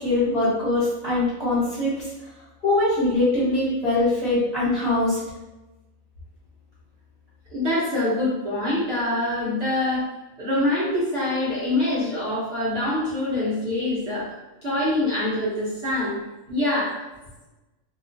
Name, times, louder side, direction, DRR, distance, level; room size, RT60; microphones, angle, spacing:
voice 1, 0.0-2.1 2.6-5.2, left 2 dB, 30° left, -10 dB, 1.4 m, -22 dB
voice 2, 7.5-10.1 10.4-14.3 14.6-16.1 16.5-17.0, left 1 dB, 50° right, -9 dB, 1.1 m, -24 dB
2.8 x 2.3 x 2.7 m, 1.1 s
omnidirectional pair, 1.4 m